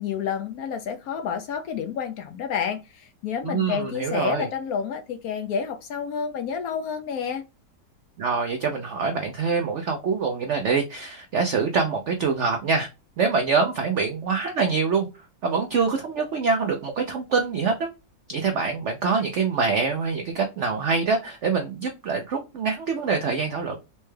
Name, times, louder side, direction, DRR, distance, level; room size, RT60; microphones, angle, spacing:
voice 1, 0.0-7.4, left 7 dB, 70° left, 0.9 m, -29 dB
voice 2, 3.4-4.5 8.2-12.9 13.2-15.1 15.4-17.9 18.3-23.8, right 5 dB, 85° right, 0.6 m, -25 dB
4.2 x 2.2 x 3.1 m
omnidirectional pair, 1.9 m